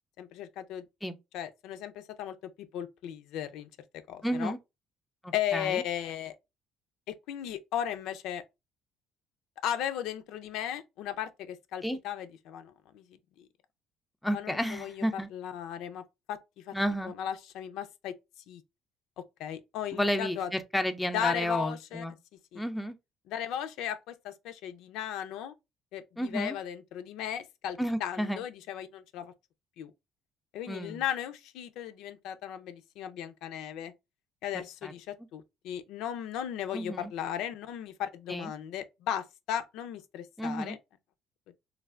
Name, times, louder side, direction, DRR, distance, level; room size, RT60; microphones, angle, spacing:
voice 1, 0.2-0.9 1.3-2.3 2.7-3.7 4.1-4.5 5.3-6.4 7.1-8.4 9.6-13.4 14.3-15.0 15.3-16.7 17.0-18.1 18.5-18.6 19.4-20.5 21.1-22.0 22.5-22.6 23.3-25.5 25.9-29.3 29.8-29.9 30.5-33.9 34.4-40.8, left 10 dB, 75° left, 0.4 m, -36 dB
voice 2, 4.2-4.6 5.2-5.8 11.8-12.0 14.2-15.3 16.7-17.1 19.9-22.1 22.5-23.0 26.2-26.6 27.8-28.4 30.7-31.0 34.8-34.9 36.7-37.1 38.3-38.5 40.4-40.8, equal, 5° left, 0.3 m, -31 dB
3.2 x 2.6 x 2.4 m
cardioid pair, 145°, 0 cm